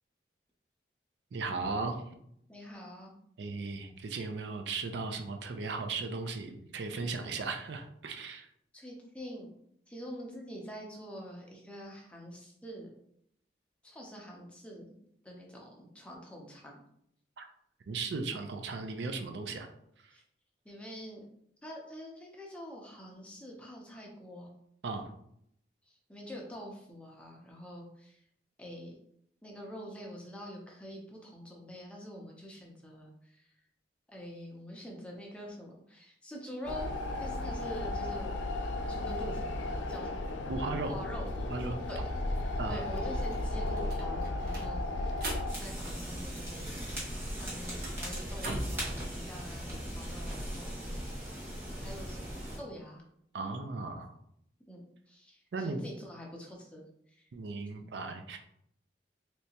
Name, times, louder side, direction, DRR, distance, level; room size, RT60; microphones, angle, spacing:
voice 1, 1.3-2.0 3.4-8.5 17.4-17.5 17.9-19.7 20.0-20.2 24.8-25.1 40.5-40.9 41.5-41.8 42.6-42.8 53.3-54.1 55.5-55.8 57.3-58.4, right 3 dB, 70° right, 6 dB, 0.4 m, -36 dB
voice 2, 2.5-3.1 8.7-9.5 9.9-12.9 13.8-15.0 15.2-16.8 20.1-20.2 20.6-21.2 21.6-24.5 25.9-28.2 28.6-28.9 29.4-33.5 34.1-36.9 37.2-38.3 38.9-39.5 39.9-40.2 40.6-41.3 41.9-42.0 42.4-45.3 45.6-46.7 47.4-51.5 51.8-52.3 52.6-53.0 54.7-57.3, equal, 5° left, -2 dB, 0.6 m, -46 dB
sound 1, 36.6-45.5, left 2 dB, 90° left, 0.4 m, -34 dB
sound 2, 42.4-42.5 42.8-46.7 47.0-48.9, right 1 dB, 55° right, 0.8 m, -42 dB
sound 3, 45.5-52.6, equal, 15° right, 1.3 m, -39 dB
3.3 x 2.8 x 2.8 m, 0.72 s
head